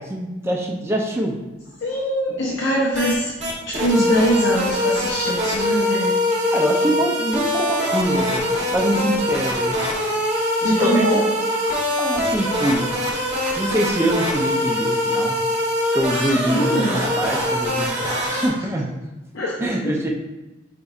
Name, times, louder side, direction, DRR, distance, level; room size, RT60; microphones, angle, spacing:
voice 1, 0.0-1.3 6.5-8.4 8.7-9.8 10.6-11.1 12.0-12.9 13.6-15.4 15.9-18.9 19.6-20.1, right 1 dB, 15° right, 0 dB, 0.4 m, -24 dB
voice 2, 1.8-3.3 3.7-6.2 10.6-11.3 11.6-11.8 16.5-17.1 18.3-18.5 19.3-20.0, equal, 80° left, -3 dB, 0.6 m, -22 dB
sound 1, 2.9-3.1 3.4-18.5, left 1 dB, 35° right, 0.9 m, -23 dB
5.1 x 3.9 x 2.4 m, 1.1 s
head